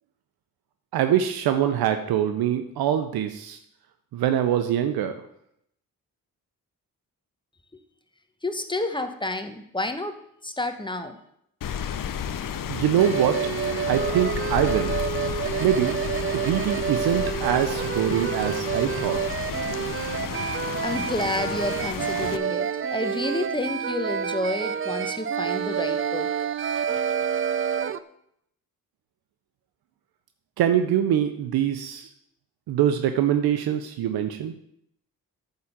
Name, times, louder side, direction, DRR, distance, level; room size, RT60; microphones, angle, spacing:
voice 1, 0.9-3.6 4.1-5.2 12.7-13.5 13.9-15.0 15.6-16.0 16.3-19.4 30.6-32.1 32.7-34.5, right 10 dB, 90° right, 8 dB, 0.6 m, -24 dB
voice 2, 8.4-10.1 10.4-11.2 20.4-26.3, left 2 dB, 15° left, 8 dB, 1.1 m, -30 dB
Rain, 11.6-22.4, left 8 dB, 65° left, 0.7 m, -32 dB
sound 1, 13.0-28.0, right 7 dB, 35° right, 0.5 m, -28 dB
9.4 x 3.8 x 7.1 m, 0.74 s
cardioid pair, 60°, 36 cm